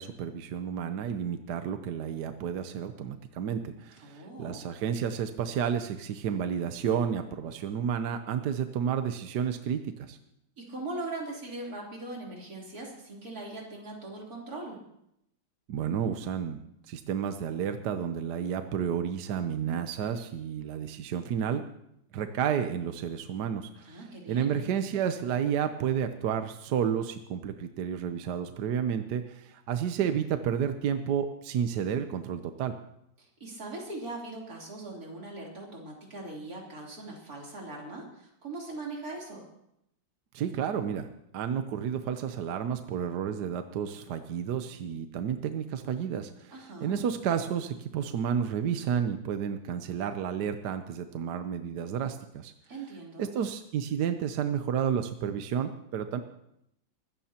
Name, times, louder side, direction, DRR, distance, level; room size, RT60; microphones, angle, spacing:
voice 1, 0.0-10.2 15.7-21.6 22.1-24.0 24.3-32.7 40.3-46.6 46.8-52.5 53.2-56.2, right 8 dB, 65° right, 8 dB, 1.3 m, -31 dB
voice 2, 4.0-4.7 10.6-14.8 23.8-24.7 33.2-39.5 46.5-47.0 52.7-53.3, right 2 dB, 50° right, -2 dB, 3.9 m, -40 dB
24.0 x 14.0 x 2.9 m, 0.77 s
omnidirectional pair, 2.1 m